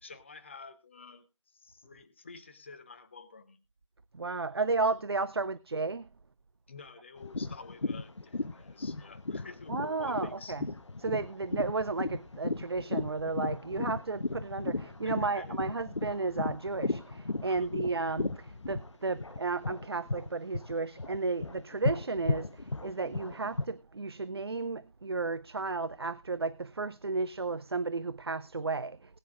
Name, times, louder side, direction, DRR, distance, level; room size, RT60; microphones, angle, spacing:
voice 1, 0.0-3.6 6.7-10.6 15.0-15.6 17.5-17.7, left 4 dB, 20° left, 0.9 m, -50 dB
voice 2, 4.1-6.1 9.7-10.6 11.0-29.2, right 3 dB, 50° right, 0.5 m, -33 dB
sound 1, 7.2-20.3 20.5-23.6, left 3 dB, 65° left, 0.9 m, -35 dB
19.5 x 9.9 x 2.5 m
figure-of-eight pair, 165°, 17 cm